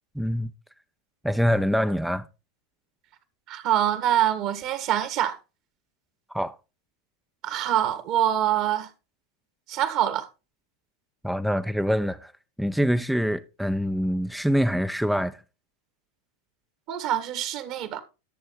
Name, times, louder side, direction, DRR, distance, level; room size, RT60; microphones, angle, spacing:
voice 1, 0.2-0.5 1.2-2.3 6.3-6.5 11.2-12.3 12.6-15.4, equal, ahead, 0.6 m, -25 dB
voice 2, 3.5-5.4 7.4-8.9 9.7-10.3 16.9-18.0, right 11 dB, 50° right, 1.6 m, -25 dB
11.0 x 6.8 x 3.9 m
hypercardioid pair, 100°, 0 cm